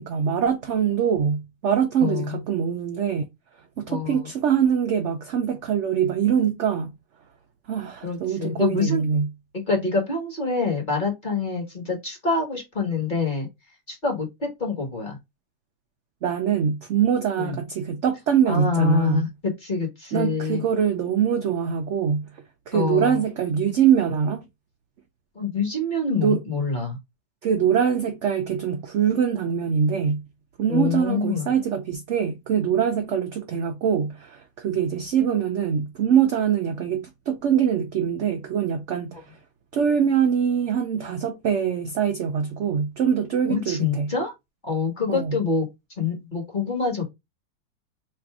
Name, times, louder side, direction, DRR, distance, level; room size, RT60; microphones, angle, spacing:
voice 1, 0.0-3.3 3.8-6.9 7.7-9.3 16.2-19.3 20.1-22.3 22.7-24.5 26.2-26.4 27.4-30.2 30.6-39.4 39.7-44.1 45.1-45.4, right 8 dB, 75° right, 0.6 m, -23 dB
voice 2, 2.0-2.4 3.9-4.3 8.0-9.0 9.5-13.5 13.9-15.2 17.4-17.6 18.5-20.6 22.7-23.2 25.3-27.0 30.7-31.5 43.5-44.3 44.6-45.7 46.0-47.0, left 4 dB, 35° left, 1.1 m, -26 dB
3.2 x 2.5 x 4.5 m
omnidirectional pair, 1.8 m